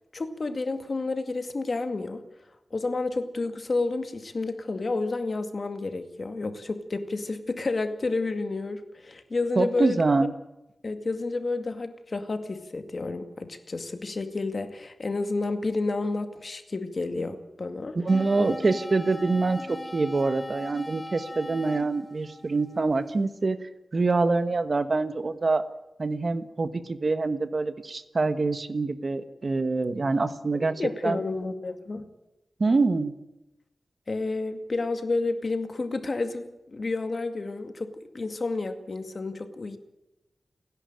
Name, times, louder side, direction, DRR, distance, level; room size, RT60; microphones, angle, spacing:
voice 1, 0.1-2.2 2.7-10.0 10.8-18.0 18.4-18.5 30.5-32.1 34.1-39.8, left 3 dB, 50° left, 8 dB, 2.2 m, -30 dB
voice 2, 9.6-10.3 17.9-23.6 23.9-25.6 26.0-31.2 32.6-33.1, right 3 dB, 50° right, 11 dB, 1.3 m, -25 dB
sound 1, 18.1-23.1, left 1 dB, 20° left, 5.3 m, -40 dB
30.0 x 11.0 x 9.1 m, 0.93 s
wide cardioid pair, 105°, 0 cm